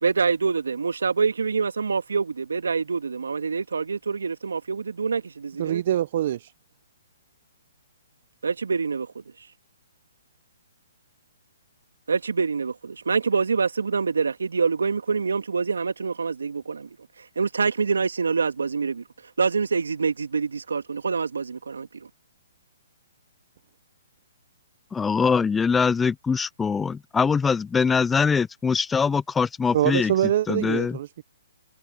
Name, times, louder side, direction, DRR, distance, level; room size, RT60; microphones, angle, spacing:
voice 1, 0.0-5.8 8.4-9.1 12.1-16.9 17.4-19.0 19.4-21.9, right 5 dB, 75° right, 2.3 m, -25 dB
voice 2, 5.6-6.5 29.7-31.2, right 12 dB, 50° right, 0.8 m, -24 dB
voice 3, 24.9-30.1 30.5-31.0, left 5 dB, 10° left, 0.4 m, -23 dB
figure-of-eight pair, 130°, 0 cm